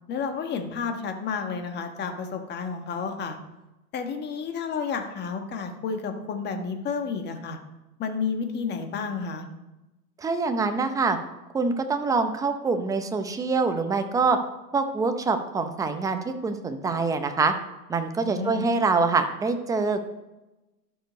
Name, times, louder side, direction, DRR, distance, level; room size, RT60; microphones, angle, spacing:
voice 1, 0.1-3.4 3.9-7.6 8.0-9.4 18.2-18.7, left 5 dB, 20° left, 5 dB, 1.4 m, -31 dB
voice 2, 10.2-11.2 11.5-14.4 14.7-17.5 17.9-20.0, right 4 dB, 5° right, 7 dB, 0.6 m, -25 dB
12.0 x 7.0 x 5.2 m, 1.0 s
hypercardioid pair, 130°, 48 cm